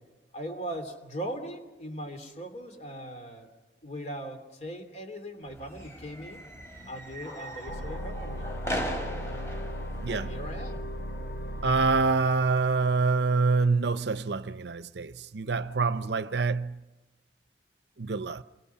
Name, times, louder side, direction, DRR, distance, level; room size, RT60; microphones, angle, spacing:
voice 1, 0.3-3.5 3.8-6.4 6.9-8.5 10.1-10.8, right 1 dB, 40° left, 3.0 m, -39 dB
sound 1, 5.4-10.8, equal, 15° left, 3.3 m, -39 dB
sound 2, 7.7-12.9, equal, 70° left, 2.7 m, -37 dB
voice 2, 10.0-10.4 11.6-16.8 18.0-18.4, right 4 dB, 70° right, 0.7 m, -26 dB
28.5 x 23.0 x 5.7 m
head